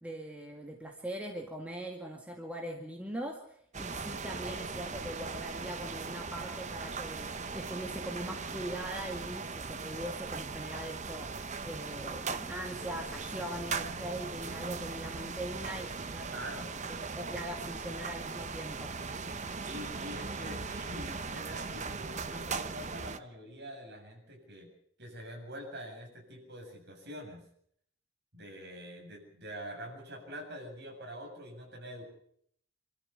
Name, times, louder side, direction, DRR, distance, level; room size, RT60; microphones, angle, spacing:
voice 1, 0.0-16.3 16.8-18.9, right 1 dB, 5° right, 1 dB, 2.0 m, -41 dB
sound 1, 3.7-23.2, right 4 dB, 35° right, 0.8 m, -39 dB
voice 2, 16.3-16.7 19.6-24.7 25.0-27.4 28.3-32.0, equal, 50° right, 1 dB, 7.5 m, -45 dB
26.5 x 13.5 x 8.2 m, 0.67 s
head